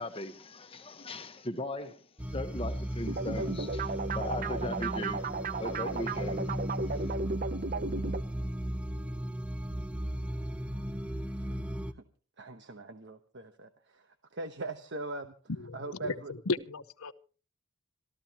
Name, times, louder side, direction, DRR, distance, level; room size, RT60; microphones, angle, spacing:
voice 1, 0.0-6.5 6.9-7.1, left 2 dB, 25° left, 1.2 m, -39 dB
sound 1, 2.2-11.9, equal, 5° right, 0.7 m, -36 dB
sound 2, 3.1-8.2, right 4 dB, 40° right, 0.7 m, -35 dB
voice 2, 12.4-15.3 15.7-16.3, right 2 dB, 55° right, 1.1 m, -41 dB
voice 3, 15.7-16.2 16.5-17.1, left 3 dB, 85° left, 0.8 m, -34 dB
26.5 x 13.5 x 2.9 m
head